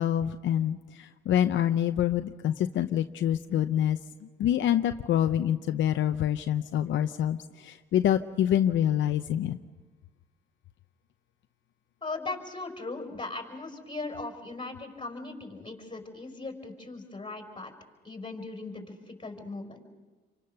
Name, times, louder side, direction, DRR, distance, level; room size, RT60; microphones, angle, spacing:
voice 1, 0.0-4.0 4.4-9.6, left 10 dB, 70° left, 8 dB, 0.7 m, -26 dB
voice 2, 12.0-17.7 18.0-19.8, left 3 dB, 25° left, 3 dB, 5.2 m, -38 dB
28.5 x 24.5 x 6.8 m, 1.4 s
cardioid pair, 90°, 20 cm